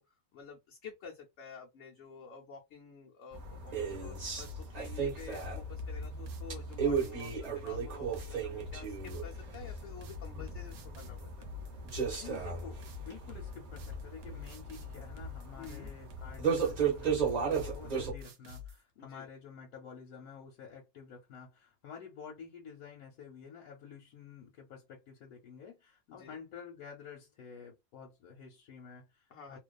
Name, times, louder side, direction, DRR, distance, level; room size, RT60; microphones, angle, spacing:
voice 1, 0.0-11.5 15.5-15.9 19.0-19.3 26.1-26.4 29.3-29.6, left 7 dB, 65° left, 0.8 m, -50 dB
sound 1, 3.3-18.1, right 5 dB, 35° right, 0.7 m, -36 dB
sound 2, 3.9-18.8, left 5 dB, 90° right, 1.1 m, -46 dB
voice 2, 12.2-29.6, left 6 dB, 85° left, 1.1 m, -50 dB
2.5 x 2.3 x 2.2 m
omnidirectional pair, 1.5 m